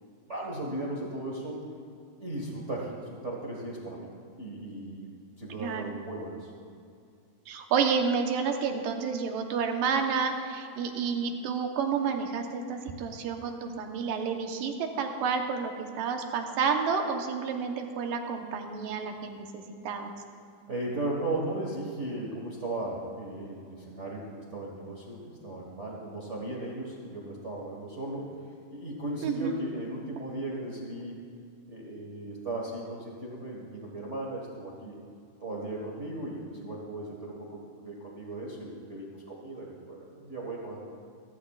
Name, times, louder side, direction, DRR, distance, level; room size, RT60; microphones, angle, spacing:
voice 1, 0.3-1.6 2.2-4.1 4.4-6.5 20.7-28.4 28.7-31.2 31.7-35.0 35.4-40.9, right 2 dB, 60° right, -3 dB, 0.7 m, -36 dB
voice 2, 5.5-5.9 7.5-20.1 29.2-29.5, right 6 dB, 80° right, 4 dB, 2.6 m, -30 dB
28.0 x 12.0 x 2.4 m, 2.3 s
omnidirectional pair, 3.9 m